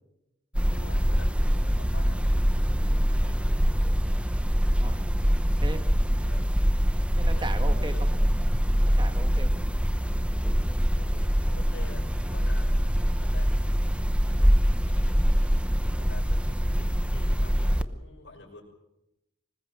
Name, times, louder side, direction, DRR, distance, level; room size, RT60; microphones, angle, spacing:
sound 1, 0.5-17.8, equal, 5° right, 0.9 m, -24 dB
voice 1, 0.7-2.6 3.1-4.0 6.2-6.5 7.3-8.2 10.9-13.9 14.2-18.6, left 2 dB, 80° left, -6 dB, 6.2 m, -49 dB
voice 2, 4.8-5.1 5.6-6.2 7.2-8.1 8.8-9.7, right 2 dB, 25° right, 8 dB, 1.9 m, -38 dB
25.5 x 20.5 x 7.7 m, 0.88 s
head